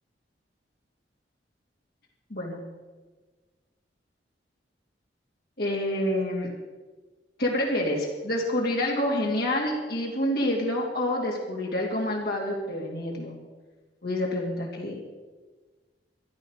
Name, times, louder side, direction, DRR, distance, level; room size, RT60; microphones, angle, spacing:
voice 1, 2.3-2.6 5.6-6.5 7.4-13.4 14.0-15.0, left 1 dB, 60° left, -2 dB, 3.0 m, -27 dB
14.5 x 11.5 x 6.6 m, 1.3 s
head